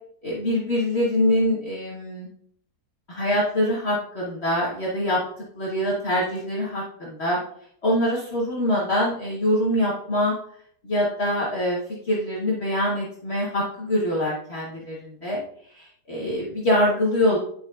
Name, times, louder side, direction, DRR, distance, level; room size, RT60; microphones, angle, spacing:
voice 1, 0.2-2.3 3.1-5.2 5.5-7.4 7.8-10.3 10.8-11.8 12.0-15.4 15.7-17.4, left 1 dB, 45° left, -5 dB, 1.5 m, -24 dB
9.2 x 6.2 x 2.5 m, 0.66 s
omnidirectional pair, 1.7 m